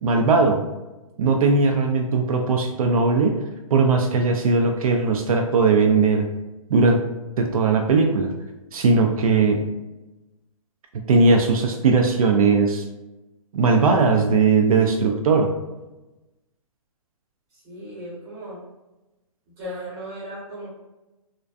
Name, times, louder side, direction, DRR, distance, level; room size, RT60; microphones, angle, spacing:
voice 1, 0.0-0.6 1.2-3.4 3.7-6.3 6.7-7.0 7.4-8.3 8.7-9.6 11.1-12.8 13.5-15.5, right 4 dB, 80° right, 3 dB, 0.4 m, -19 dB
voice 2, 17.5-18.6 19.5-20.7, equal, 15° right, -8 dB, 0.9 m, -36 dB
2.5 x 2.1 x 2.4 m, 1.0 s
hypercardioid pair, 165°, 18 cm